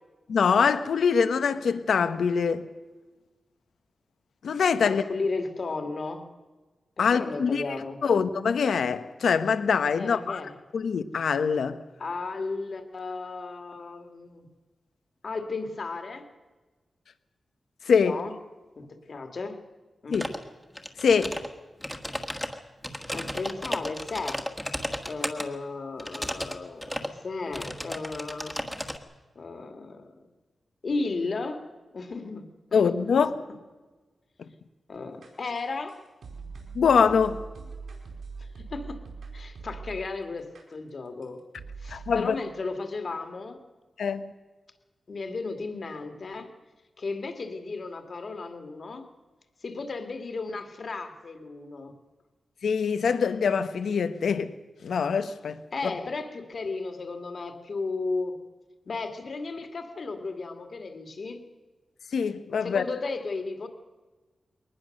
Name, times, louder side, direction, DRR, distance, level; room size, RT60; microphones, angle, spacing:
voice 1, 0.3-2.7 4.4-5.0 7.0-7.6 8.0-10.4 10.7-11.8 17.8-18.2 20.1-20.3 21.0-21.4 32.7-33.3 34.4-34.5 36.7-37.4 41.9-42.3 44.0-44.3 52.6-54.5 54.8-55.9 62.1-62.8, left 6 dB, 85° left, 1.2 m, -24 dB
voice 2, 4.8-6.3 7.0-8.0 10.0-10.5 12.0-14.5 15.2-16.3 18.0-18.3 18.8-19.6 20.0-20.2 23.1-24.4 25.1-28.6 29.4-30.2 30.8-31.7 31.9-32.4 32.8-33.2 34.9-36.0 38.4-39.0 39.3-41.4 41.8-43.6 45.1-46.5 47.0-49.1 49.6-51.9 55.7-58.4 58.9-61.4 62.6-63.7, left 3 dB, 45° left, 2.1 m, -34 dB
sound 1, 20.1-20.4 20.8-21.5 21.8-25.5 26.0-26.5 26.8-27.1 27.5-29.0, equal, 5° left, 1.4 m, -34 dB
sound 2, 35.2-40.1 40.5-40.6 41.2-41.3 41.5-42.2, right 4 dB, 80° right, 4.8 m, -42 dB
22.5 x 19.5 x 6.6 m
wide cardioid pair, 180°, 0 cm